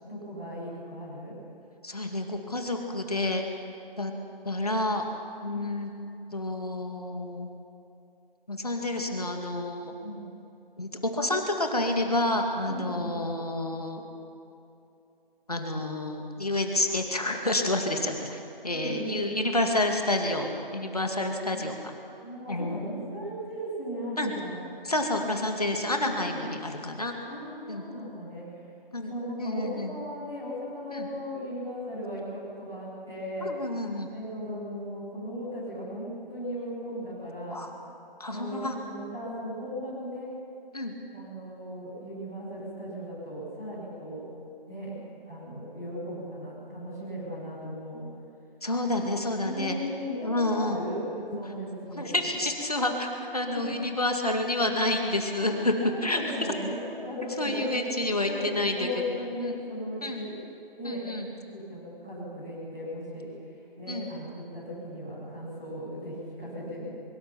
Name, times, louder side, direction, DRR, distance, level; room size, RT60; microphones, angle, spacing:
voice 1, 0.0-1.3 10.0-10.2 12.6-13.1 18.7-19.3 21.5-21.6 22.2-24.6 25.6-26.4 27.2-28.4 29.0-33.5 34.1-37.6 38.3-40.3 41.1-44.2 44.6-45.0 45.3-48.0 49.4-52.3 53.5-53.7 55.4-55.5 55.8-57.8 58.2-60.3 60.8-63.3 63.7-66.9, equal, 5° right, -14 dB, 1.9 m, -37 dB
voice 2, 1.8-3.4 4.0-4.1 4.4-5.0 5.4-5.9 6.3-7.5 8.5-9.9 10.8-14.0 15.5-21.9 22.5-22.9 24.2-24.3 24.8-27.1 27.7-27.9 28.9-29.1 29.4-29.9 30.9-31.1 33.4-34.1 37.5-37.7 38.2-38.8 40.7-40.9 48.6-49.8 50.2-50.8 51.9-56.5 57.4-58.9 59.4-59.6 60.0-60.2 60.8-61.3 63.9-64.1, left 1 dB, 40° left, 3 dB, 2.3 m, -29 dB
23.5 x 22.5 x 6.0 m, 2.7 s
figure-of-eight pair, 180°, 29 cm